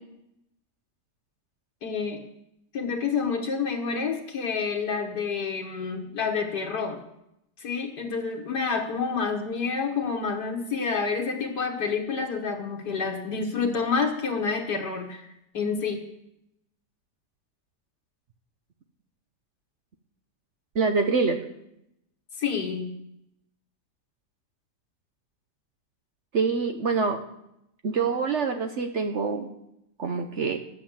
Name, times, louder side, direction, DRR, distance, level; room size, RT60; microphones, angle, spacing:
voice 1, 1.8-2.2 2.7-7.0 7.6-15.3 15.5-16.0 22.4-22.9, left 5 dB, 70° left, 1 dB, 1.9 m, -28 dB
voice 2, 20.7-21.4 26.3-27.2 27.8-29.5 30.0-30.6, right 4 dB, 55° right, 5 dB, 0.9 m, -25 dB
11.0 x 7.7 x 7.3 m, 0.82 s
omnidirectional pair, 1.8 m